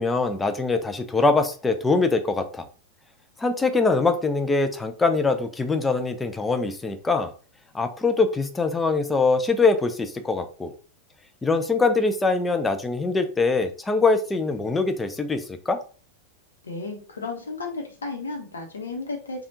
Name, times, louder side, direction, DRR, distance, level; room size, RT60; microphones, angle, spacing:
voice 1, 0.0-2.6 3.4-7.3 7.7-10.7 11.4-15.8, left 3 dB, 10° left, 8 dB, 0.4 m, -23 dB
voice 2, 16.6-19.5, left 3 dB, 70° left, 2 dB, 0.8 m, -33 dB
3.3 x 2.3 x 2.7 m, 0.38 s
figure-of-eight pair, 90°, 0 cm